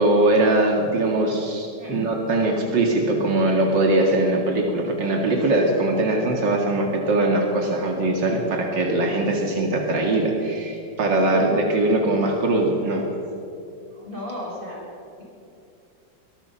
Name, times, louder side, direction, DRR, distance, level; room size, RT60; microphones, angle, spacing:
voice 1, 0.0-13.1, right 2 dB, 90° right, 1 dB, 2.9 m, -21 dB
voice 2, 1.8-2.1 11.3-11.5 14.0-14.8, left 1 dB, 30° right, -4 dB, 7.2 m, -34 dB
23.0 x 20.0 x 5.8 m, 2.7 s
omnidirectional pair, 1.9 m